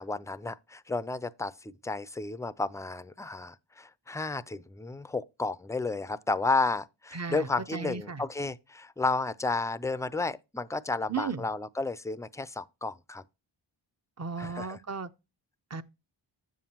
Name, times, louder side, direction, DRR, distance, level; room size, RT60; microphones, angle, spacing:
voice 1, 0.0-13.2 14.4-14.8, left 3 dB, 5° left, 0.4 m, -32 dB
voice 2, 7.1-8.2 11.1-11.4 14.2-15.1 15.7-15.8, right 5 dB, 35° right, 0.7 m, -35 dB
9.2 x 7.2 x 2.9 m
cardioid pair, 65°, 47 cm